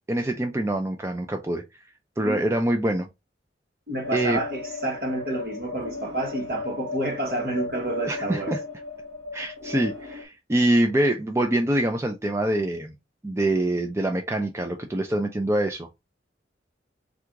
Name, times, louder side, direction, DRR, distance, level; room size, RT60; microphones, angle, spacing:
voice 1, 0.1-1.6 2.2-3.1 4.1-4.4 8.1-8.6 9.3-12.9 13.2-15.9, right 1 dB, 15° right, 0.4 m, -25 dB
voice 2, 3.9-8.5, right 1 dB, 55° right, 1.1 m, -29 dB
sound 1, 4.0-10.2, left 3 dB, 80° right, 1.1 m, -36 dB
3.8 x 2.5 x 4.5 m
head